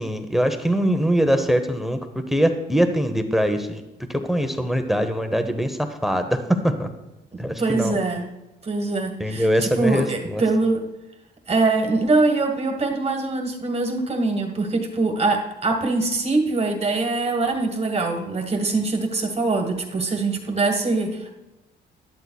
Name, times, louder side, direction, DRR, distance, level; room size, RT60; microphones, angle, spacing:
voice 1, 0.0-2.0 2.3-3.8 4.1-6.9 7.4-8.0 9.2-10.4, equal, ahead, 8 dB, 0.8 m, -22 dB
voice 2, 7.3-8.3 8.6-10.8 11.5-21.3, right 3 dB, 30° right, 4 dB, 1.5 m, -23 dB
12.5 x 11.5 x 2.3 m, 0.96 s
cardioid pair, 90°, 20 cm